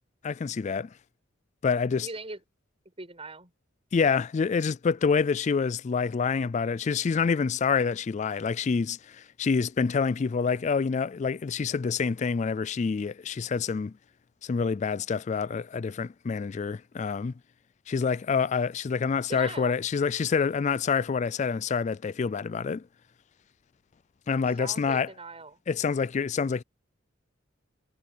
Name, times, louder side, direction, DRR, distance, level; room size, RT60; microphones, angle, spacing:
voice 1, 0.2-0.9 1.6-2.1 3.9-13.9 14.4-17.3 17.9-22.8 24.3-25.1 25.7-26.6, left 5 dB, 35° left, 0.3 m, -27 dB
voice 2, 2.0-2.4 3.0-3.5 19.3-19.8 24.6-25.6, right 3 dB, 30° right, 7.1 m, -40 dB
head